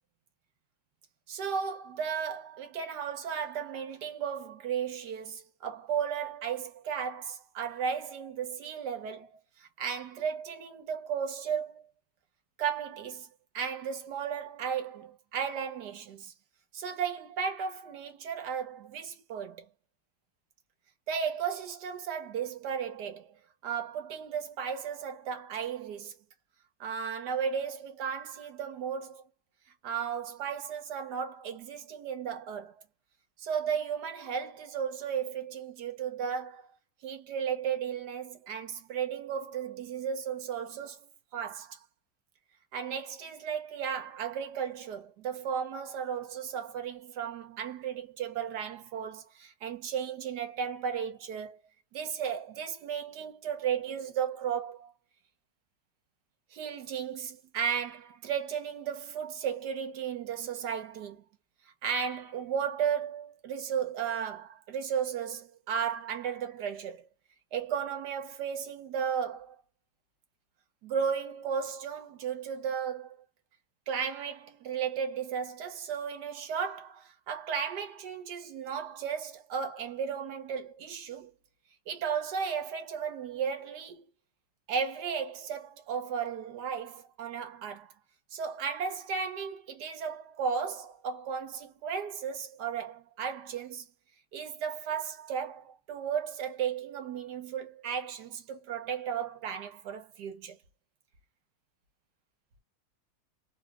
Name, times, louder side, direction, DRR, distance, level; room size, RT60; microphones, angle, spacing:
voice 1, 1.3-11.9 12.6-13.3 13.5-16.3 16.7-19.7 21.1-23.3 23.6-26.1 26.8-29.2 29.8-32.7 33.4-36.7 37.0-41.0 41.3-41.8 42.7-51.6 51.9-54.9 56.5-61.2 61.8-67.1 67.5-69.6 70.8-73.1 73.9-81.3 81.9-84.1 84.7-87.9 88.3-93.9 94.3-100.6, right 7 dB, 80° right, 1.5 m, -34 dB
4.1 x 2.3 x 2.3 m
omnidirectional pair, 1.8 m